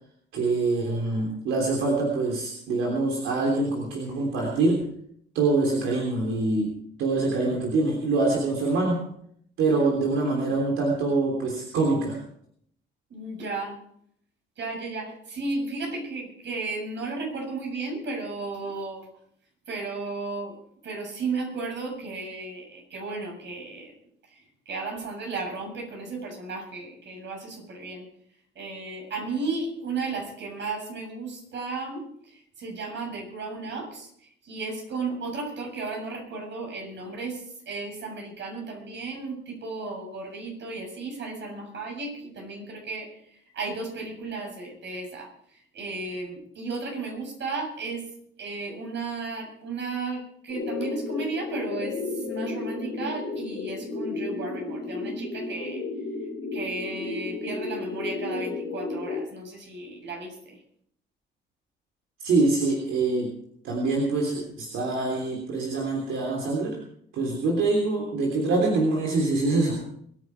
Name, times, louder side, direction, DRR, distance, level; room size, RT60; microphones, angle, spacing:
voice 1, 0.3-4.9 5.4-9.1 9.6-12.2 62.2-63.4 63.6-66.8 67.1-70.0, right 3 dB, 85° right, 0 dB, 3.4 m, -25 dB
voice 2, 13.1-13.8 14.6-19.1 19.7-20.6 20.8-23.9 24.3-28.1 28.6-34.1 34.4-43.1 43.5-45.3 45.7-48.0 48.4-55.8 56.5-60.6, right 3 dB, 65° right, 2 dB, 7.5 m, -34 dB
sound 1, 50.5-59.2, left 3 dB, 80° left, 4.6 m, -33 dB
23.0 x 10.5 x 4.8 m, 0.67 s
cardioid pair, 90°, 20 cm